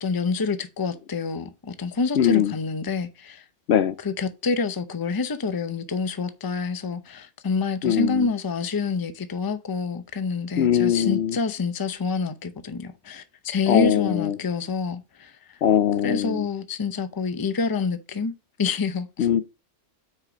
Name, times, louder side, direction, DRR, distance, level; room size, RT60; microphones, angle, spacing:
voice 1, 0.0-3.4 4.0-15.6 16.0-18.3 18.6-19.3, left 4 dB, 25° left, 0.6 m, -27 dB
voice 2, 2.2-2.5 3.7-3.9 7.8-8.3 10.6-11.4 13.7-14.3 15.6-16.4 19.2-19.4, left 9 dB, 70° left, 0.8 m, -21 dB
6.5 x 4.9 x 5.0 m
omnidirectional pair, 1.2 m